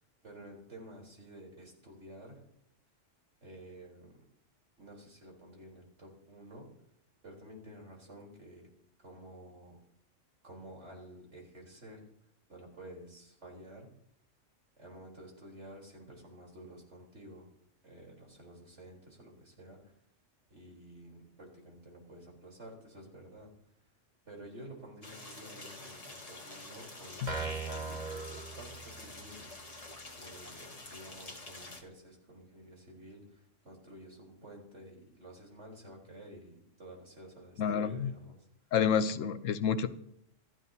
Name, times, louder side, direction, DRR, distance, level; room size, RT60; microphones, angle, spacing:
voice 1, 0.2-2.4 3.4-4.2 4.8-6.7 7.2-8.7 9.0-9.8 10.4-12.1 12.5-13.9 14.8-17.5 17.8-19.9 20.5-23.5 24.2-29.8 30.2-38.3, right 1 dB, 65° right, -1 dB, 4.3 m, -51 dB
sound 1, 25.0-31.8, left 2 dB, 30° left, 1.6 m, -48 dB
sound 2, 27.3-29.2, right 4 dB, 35° right, 2.2 m, -39 dB
voice 2, 37.6-38.1 38.7-39.9, left 7 dB, 85° left, 12 dB, 1.1 m, -29 dB
27.5 x 12.0 x 2.8 m, 0.72 s
omnidirectional pair, 1.3 m